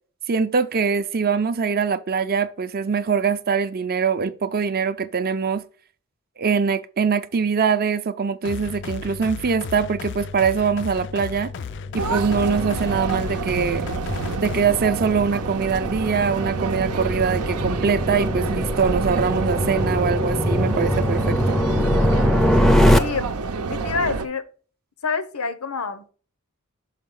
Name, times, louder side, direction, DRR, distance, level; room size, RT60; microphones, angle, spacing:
voice 1, 0.3-5.6 6.4-11.5 11.9-13.9 14.4-21.6, right 6 dB, 45° right, 0.5 m, -23 dB
sound 1, 8.4-14.6, left 5 dB, 55° left, 0.4 m, -34 dB
sound 2, 11.9-23.0, equal, ahead, 0.5 m, -23 dB
sound 3, 12.0-24.3, right 3 dB, 85° right, 0.7 m, -28 dB
voice 2, 22.9-23.3 23.7-24.4 25.0-26.1, left 4 dB, 75° left, 0.8 m, -27 dB
6.5 x 4.8 x 3.8 m
head